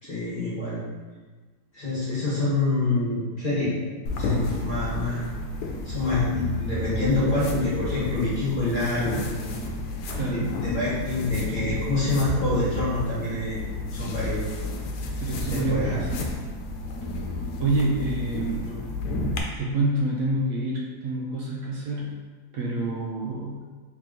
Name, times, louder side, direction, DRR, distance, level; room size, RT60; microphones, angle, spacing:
voice 1, 0.0-0.8 1.7-3.7 4.2-5.2 5.8-9.3 10.3-13.6 13.9-14.4 15.5-16.1 18.6-18.8, left 2 dB, 35° left, -9 dB, 1.3 m, -26 dB
sound 1, 4.1-19.4, left 2 dB, 80° left, 1.1 m, -31 dB
voice 2, 10.2-10.6 15.1-16.3 17.6-18.7 19.6-22.1 22.5-23.6, right 2 dB, 70° right, -2 dB, 0.9 m, -27 dB
3.6 x 2.9 x 3.6 m, 1.3 s
omnidirectional pair, 1.7 m